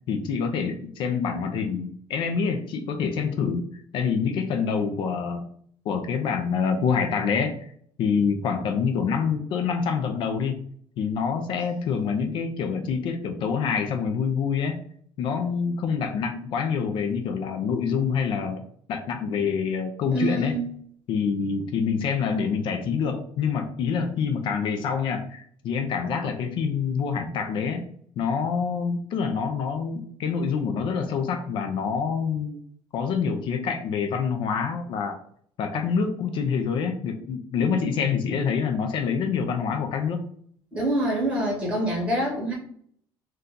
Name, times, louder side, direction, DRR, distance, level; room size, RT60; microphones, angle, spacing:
voice 1, 0.1-5.4 5.9-7.6 8.0-10.6 11.0-14.8 15.2-18.6 18.9-20.6 21.1-27.8 28.2-32.6 32.9-35.2 35.6-40.3, left 6 dB, 50° left, 6 dB, 0.4 m, -26 dB
voice 2, 20.1-20.7 40.7-42.5, right 1 dB, 10° right, -1 dB, 1.4 m, -25 dB
2.6 x 2.3 x 3.6 m, 0.62 s
cardioid pair, 155°, 11 cm